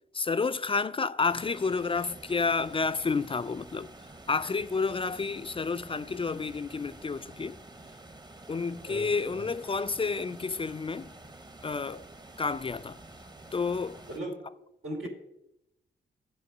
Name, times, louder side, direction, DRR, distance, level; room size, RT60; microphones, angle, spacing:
voice 1, 0.1-3.9 4.3-7.6 8.5-11.1 11.6-12.1 12.4-13.0 13.5-14.0, left 4 dB, 25° left, 0.3 m, -30 dB
sound 1, 1.3-14.2, right 2 dB, 20° right, 0.8 m, -49 dB
voice 2, 8.9-9.5 14.1-14.4 14.8-15.1, right 1 dB, 90° right, 2.8 m, -38 dB
8.4 x 4.6 x 7.2 m
cardioid pair, 55°, 21 cm